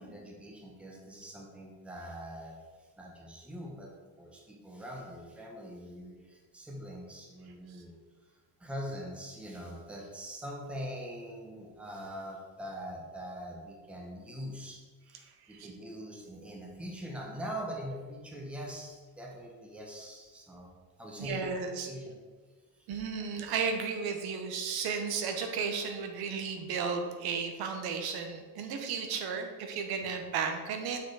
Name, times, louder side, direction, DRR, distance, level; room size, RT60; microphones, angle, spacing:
voice 1, 0.0-7.9 8.6-20.7 21.0-21.4 21.8-22.2 22.8-22.9 23.1-23.2 28.6-28.7, equal, 5° right, -1 dB, 0.9 m, -43 dB
voice 2, 21.2-21.9 22.9-31.0, right 5 dB, 70° right, 5 dB, 1.0 m, -34 dB
6.5 x 4.7 x 4.8 m, 1.4 s
cardioid pair, 170°, 39 cm